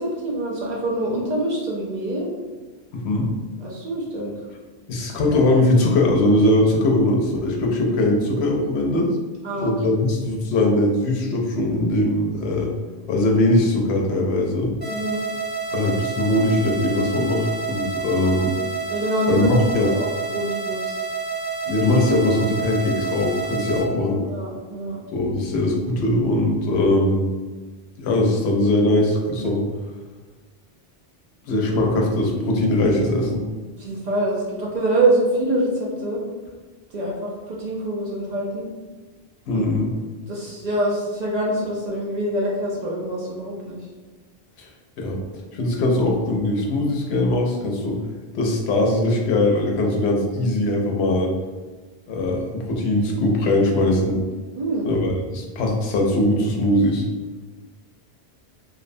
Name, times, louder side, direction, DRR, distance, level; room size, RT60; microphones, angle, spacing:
voice 1, 0.0-2.3 3.6-4.3 8.0-8.2 9.4-10.1 14.9-15.2 18.9-19.5 19.9-20.1 20.3-20.9 24.3-25.0 33.8-36.2 36.9-38.7 39.5-39.7 40.3-43.8 54.5-54.9, right 1 dB, 55° right, -3 dB, 0.5 m, -25 dB
voice 2, 2.9-3.3 4.9-9.1 9.6-12.7 13.1-14.7 15.7-18.5 19.3-19.9 21.7-24.2 25.1-27.3 28.0-29.7 31.5-33.4 39.5-39.9 44.6-44.7 45.0-45.2 45.5-48.0 48.3-51.3 52.1-54.2 54.8-57.0, left 1 dB, 90° left, 1 dB, 0.8 m, -20 dB
sound 1, 14.8-23.8, right 5 dB, 15° left, 0.5 m, -29 dB
2.6 x 2.0 x 2.5 m, 1.3 s
omnidirectional pair, 1.1 m